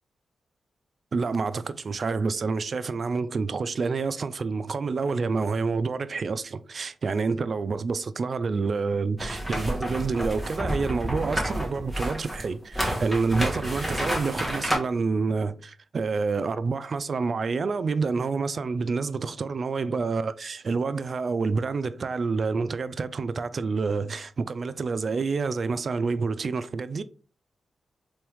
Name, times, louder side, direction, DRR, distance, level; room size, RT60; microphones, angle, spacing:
voice 1, 1.1-27.0, right 4 dB, 55° right, 0.3 m, -28 dB
sound 1, 9.2-14.8, equal, ahead, 1.7 m, -29 dB
3.4 x 3.1 x 3.3 m
cardioid pair, 65°, 0 cm